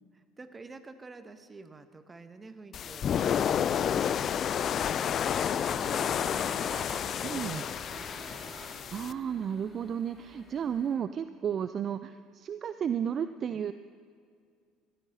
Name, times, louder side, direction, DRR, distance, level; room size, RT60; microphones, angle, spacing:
voice 1, 0.1-4.3 4.7-8.5, right 3 dB, 20° right, 10 dB, 1.0 m, -49 dB
sound 1, 2.7-9.1, left 8 dB, 45° left, 0.3 m, -30 dB
sound 2, 5.6-10.9, left 2 dB, 25° left, 2.7 m, -47 dB
voice 2, 7.2-7.6 8.9-13.7, right 8 dB, 40° right, 12 dB, 0.3 m, -33 dB
20.0 x 14.5 x 2.8 m, 2.2 s
figure-of-eight pair, 60°, 0 cm